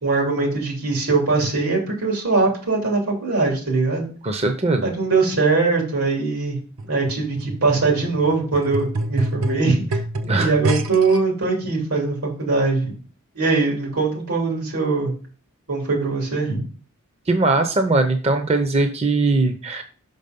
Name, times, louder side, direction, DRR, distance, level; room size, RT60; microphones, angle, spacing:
voice 1, 0.0-4.1 4.8-6.6 6.9-10.0 10.4-12.9 13.3-15.1 15.7-16.6, right 3 dB, 90° right, -1 dB, 3.2 m, -21 dB
voice 2, 4.2-4.9 10.3-10.5 17.3-19.8, right 2 dB, 30° right, 6 dB, 0.6 m, -20 dB
sound 1, 6.8-11.2 12.0-12.1, right 1 dB, 70° right, 0.8 m, -27 dB
6.0 x 5.4 x 5.2 m, 0.40 s
head